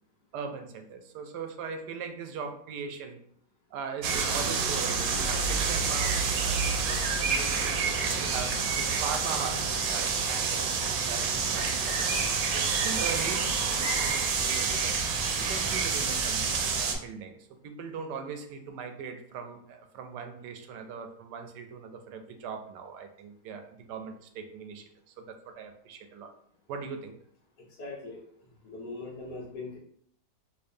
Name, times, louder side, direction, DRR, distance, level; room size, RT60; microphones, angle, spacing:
voice 1, 0.3-3.2 3.7-7.8 8.2-14.9 15.4-26.3 26.7-27.2, right 5 dB, 85° right, 6 dB, 1.2 m, -40 dB
sound 1, 4.0-17.0, right 5 dB, 70° right, 1.0 m, -28 dB
voice 2, 27.8-28.2 28.6-29.8, left 3 dB, 80° left, -7 dB, 1.5 m, -40 dB
4.3 x 2.6 x 2.6 m, 0.64 s
omnidirectional pair, 1.8 m